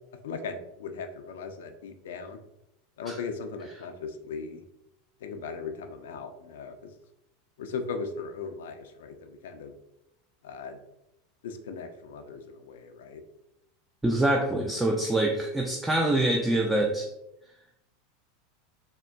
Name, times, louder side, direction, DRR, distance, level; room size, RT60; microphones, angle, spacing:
voice 1, 0.2-2.4 3.0-4.6 5.2-6.9 7.6-9.7 10.4-10.8 11.4-13.2, left 5 dB, 75° left, 7 dB, 0.3 m, -38 dB
voice 2, 14.0-17.1, right 1 dB, 10° right, 0 dB, 0.3 m, -25 dB
3.5 x 2.1 x 2.2 m, 0.84 s
hypercardioid pair, 95°, 0 cm